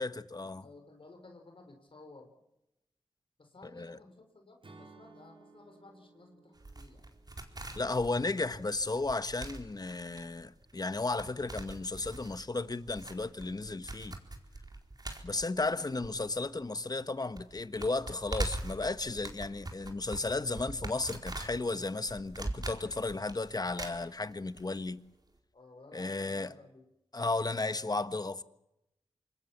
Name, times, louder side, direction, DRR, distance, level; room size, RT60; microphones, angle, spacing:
voice 1, 0.0-0.6 3.7-4.0 7.7-14.2 15.2-25.0 25.9-26.5 27.1-28.4, left 3 dB, 40° left, 1.4 m, -34 dB
voice 2, 0.6-2.3 3.4-7.1 15.3-15.5 25.5-26.8, left 2 dB, 55° left, 5.1 m, -55 dB
Acoustic guitar / Strum, 4.6-8.7, right 3 dB, 55° right, 5.0 m, -59 dB
sound 1, 6.6-16.7 16.9-17.0 17.3-24.6 24.9-25.0, right 2 dB, 40° right, 4.6 m, -42 dB
26.5 x 21.0 x 7.4 m
cardioid pair, 45°, 11 cm